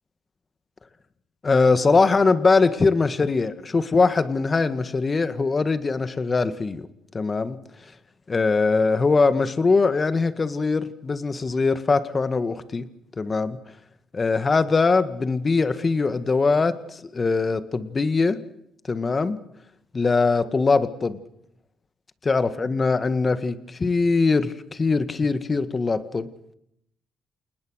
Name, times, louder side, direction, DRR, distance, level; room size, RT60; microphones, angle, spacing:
voice 1, 1.4-6.9 7.1-7.6 8.3-12.9 13.2-13.6 14.1-18.4 18.9-19.4 19.9-21.2 22.3-26.3, left 4 dB, 30° left, 12 dB, 1.9 m, -22 dB
28.5 x 19.5 x 6.5 m, 0.75 s
cardioid pair, 90°, 0 cm